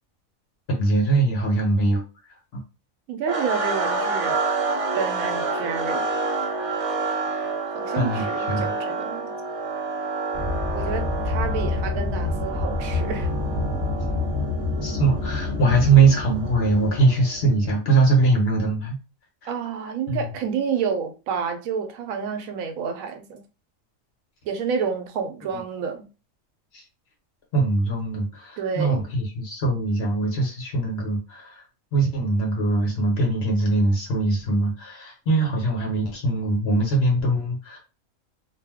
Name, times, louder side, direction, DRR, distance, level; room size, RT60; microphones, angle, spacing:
voice 1, 0.7-2.0 2.5-2.6 7.9-8.7 14.8-19.0 19.4-19.5 20.1-20.2 26.7-26.8 27.5-31.6 31.9-37.8, right 3 dB, 55° left, 1.1 m, -22 dB
voice 2, 3.1-4.4 4.9-6.1 7.7-9.3 10.7-13.3 19.4-23.4 24.5-26.1 28.6-29.1, right 6 dB, 90° right, 1.0 m, -29 dB
sound 1, 3.3-17.4, right 3 dB, 60° right, 0.3 m, -29 dB
sound 2, 10.3-17.4, left 3 dB, 20° right, 0.9 m, -28 dB
2.6 x 2.2 x 3.5 m
omnidirectional pair, 1.4 m